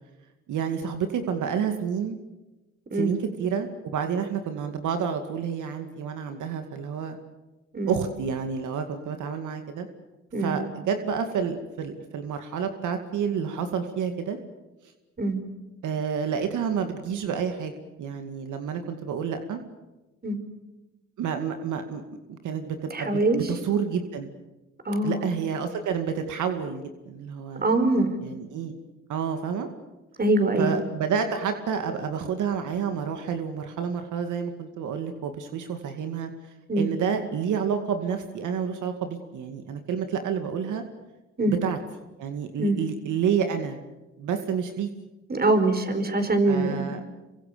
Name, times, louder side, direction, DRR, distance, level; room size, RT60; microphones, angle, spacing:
voice 1, 0.5-2.2 2.9-7.2 7.9-9.9 10.4-14.4 15.8-17.7 18.0-19.6 21.2-22.0 22.3-24.3 25.0-27.8 28.2-28.7 29.1-29.7 30.6-40.8 41.5-41.8 42.2-43.8 44.2-44.9 46.5-47.0, right 7 dB, 80° right, 7 dB, 2.4 m, -29 dB
voice 2, 22.9-23.4 24.8-25.2 27.6-28.2 30.2-30.8 36.7-36.9 41.4-41.5 42.6-42.8 45.3-46.9, right 2 dB, 30° right, 9 dB, 4.7 m, -23 dB
27.0 x 24.5 x 6.9 m, 1.1 s
cardioid pair, 90°, 30 cm